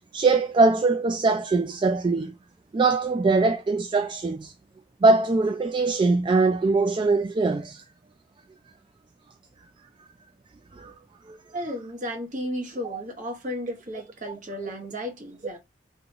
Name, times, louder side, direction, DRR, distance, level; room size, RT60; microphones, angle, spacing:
voice 1, 0.1-2.3 2.7-4.5 5.0-7.8 10.8-10.9 11.3-11.4 12.8-13.0, right 3 dB, 25° right, 0.3 m, -22 dB
voice 2, 11.5-15.6, equal, 45° right, 1.3 m, -34 dB
4.8 x 2.5 x 2.9 m
head